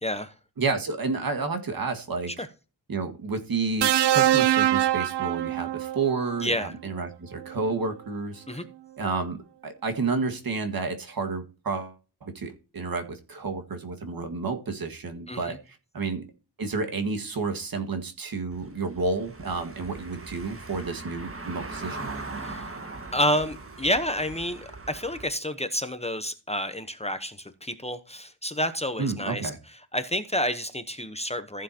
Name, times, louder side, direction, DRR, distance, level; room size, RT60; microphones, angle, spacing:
voice 1, 0.0-0.3 2.3-2.5 6.4-6.7 8.5-8.6 15.3-15.6 22.4-22.7 23.1-29.5 29.9-31.6, left 1 dB, 15° left, 0.8 m, -29 dB
voice 2, 0.6-2.5 2.9-8.6 9.0-12.0 12.2-16.2 16.6-22.1 29.0-29.6, right 4 dB, 60° right, 1.8 m, -30 dB
sound 1, 3.8-6.1 7.4-7.6, right 12 dB, 75° right, 0.6 m, -23 dB
Car passing by / Engine, 18.5-25.3, right 3 dB, 30° right, 1.6 m, -40 dB
15.0 x 7.4 x 2.8 m
wide cardioid pair, 145°, 41 cm